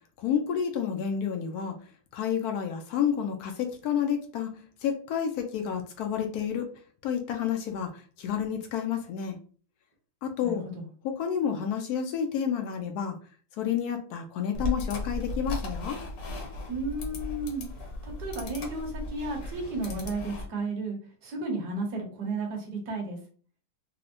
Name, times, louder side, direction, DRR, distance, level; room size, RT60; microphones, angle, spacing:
voice 1, 0.2-1.8 2.1-6.7 7.0-9.4 10.2-10.6 11.0-13.2 13.6-16.0, left 8 dB, 80° left, 5 dB, 0.8 m, -30 dB
voice 2, 10.4-10.9 16.7-17.7 18.0-23.2, right 2 dB, 60° right, 1 dB, 1.3 m, -33 dB
sound 1, 14.5-20.5, left 2 dB, 60° left, 1.1 m, -36 dB
4.4 x 2.0 x 2.5 m, 0.41 s
omnidirectional pair, 2.1 m